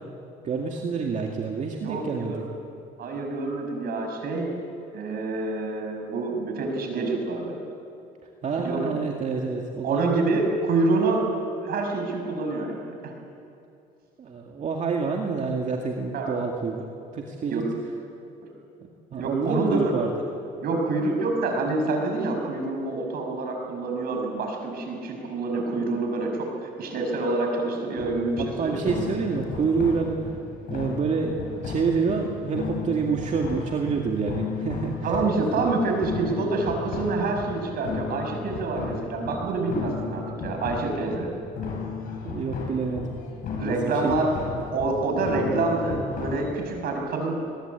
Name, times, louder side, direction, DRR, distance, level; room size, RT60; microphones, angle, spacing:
voice 1, 0.4-2.4 8.4-10.0 14.2-16.9 17.1-17.6 19.1-20.1 28.4-30.3 30.7-35.2 35.6-35.7 42.2-43.2 43.6-44.1, right 5 dB, 45° right, 1 dB, 2.2 m, -27 dB
voice 2, 1.8-2.4 3.0-4.5 4.9-7.6 8.6-8.9 9.8-11.3 11.6-13.1 16.1-16.4 17.5-17.7 19.1-19.9 20.6-29.2 35.0-41.3 43.6-44.3 44.7-47.5, right 3 dB, 65° right, 2 dB, 5.9 m, -27 dB
sound 1, 28.0-46.5, left 5 dB, 60° left, 5.7 m, -35 dB
23.5 x 21.0 x 8.3 m, 2.5 s
cardioid pair, 110°, 17 cm